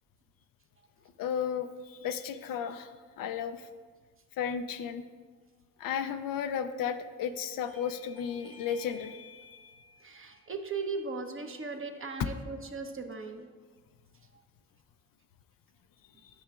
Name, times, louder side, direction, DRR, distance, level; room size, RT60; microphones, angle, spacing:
voice 1, 1.2-2.9 3.2-3.7 4.4-5.0 5.8-9.5 12.2-12.3, left 8 dB, 75° left, 8 dB, 0.5 m, -34 dB
Bell / Doorbell, 7.7-12.8, left 3 dB, 70° right, 1.7 m, -57 dB
voice 2, 10.0-13.5, right 4 dB, 40° right, 5 dB, 0.9 m, -38 dB
10.5 x 5.7 x 2.4 m, 1.5 s
supercardioid pair, 45°, 34 cm